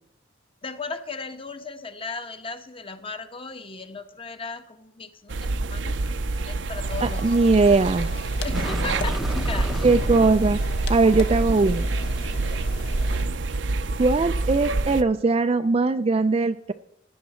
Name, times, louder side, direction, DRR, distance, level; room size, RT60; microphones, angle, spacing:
voice 1, 0.6-5.9 6.5-7.3 8.4-9.9, left 4 dB, 30° left, 9 dB, 1.1 m, -36 dB
sound 1, 5.3-15.0, right 2 dB, 75° right, 0.7 m, -27 dB
sound 2, 6.8-13.2, left 2 dB, 60° left, 1.0 m, -36 dB
voice 2, 7.0-8.1 9.8-10.6 10.9-11.8 14.0-16.7, right 3 dB, 30° right, 7 dB, 0.4 m, -20 dB
sound 3, 8.0-8.1 8.4-10.8, equal, ahead, 0.7 m, -33 dB
16.5 x 10.5 x 4.3 m, 0.78 s
head